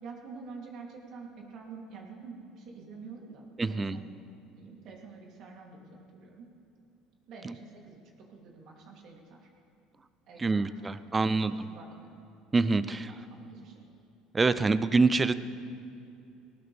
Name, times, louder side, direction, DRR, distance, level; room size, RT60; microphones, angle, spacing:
voice 1, 0.0-4.1 4.6-6.5 7.3-8.0 8.3-9.5 10.3-10.7 11.2-12.3 12.9-13.8, right 4 dB, 55° right, -2 dB, 3.0 m, -47 dB
voice 2, 3.6-4.0 7.4-7.5 10.4-11.5 12.5-13.1 14.3-15.3, right 3 dB, 15° right, 14 dB, 0.5 m, -26 dB
19.5 x 18.5 x 3.5 m, 2.6 s
cardioid pair, 130°, 0 cm